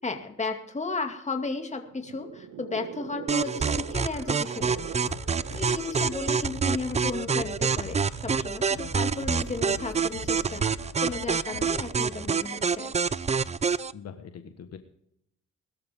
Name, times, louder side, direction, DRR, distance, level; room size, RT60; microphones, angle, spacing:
voice 1, 0.0-5.0 5.5-12.9, left 3 dB, 25° left, 5 dB, 2.5 m, -34 dB
sound 1, 1.9-10.6, right 8 dB, 85° right, 2.0 m, -44 dB
sound 2, 3.3-13.9, right 5 dB, 20° right, 0.5 m, -27 dB
sound 3, 4.6-13.0, left 5 dB, 85° left, 3.3 m, -44 dB
voice 2, 13.9-14.8, left 7 dB, 55° left, 7 dB, 1.5 m, -43 dB
20.5 x 13.0 x 3.7 m, 0.73 s
cardioid pair, 90°, 30 cm